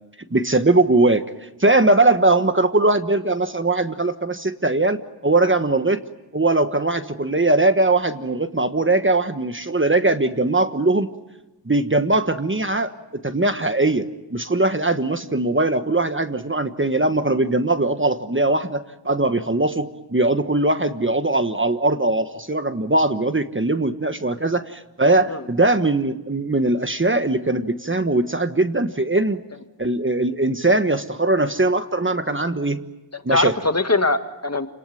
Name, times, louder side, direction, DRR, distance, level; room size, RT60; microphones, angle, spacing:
voice 1, 0.3-6.0 6.3-11.1 11.6-29.4 29.8-32.8 33.2-33.5, right 2 dB, 30° right, 9 dB, 1.3 m, -20 dB
voice 2, 33.1-34.7, left 2 dB, 35° left, 8 dB, 1.8 m, -22 dB
29.0 x 19.5 x 9.2 m, 1.0 s
wide cardioid pair, 50°, 43 cm